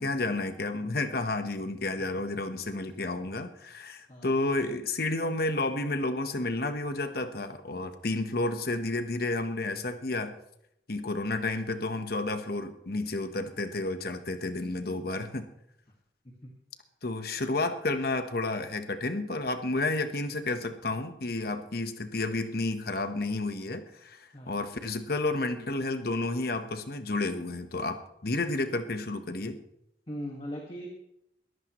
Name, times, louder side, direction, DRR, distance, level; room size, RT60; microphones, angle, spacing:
voice 1, 0.0-10.4 10.9-15.5 17.0-29.6, left 2 dB, 55° left, 8 dB, 1.1 m, -31 dB
voice 2, 30.1-30.9, equal, 30° left, 0 dB, 1.8 m, -39 dB
21.0 x 14.0 x 3.1 m, 0.79 s
head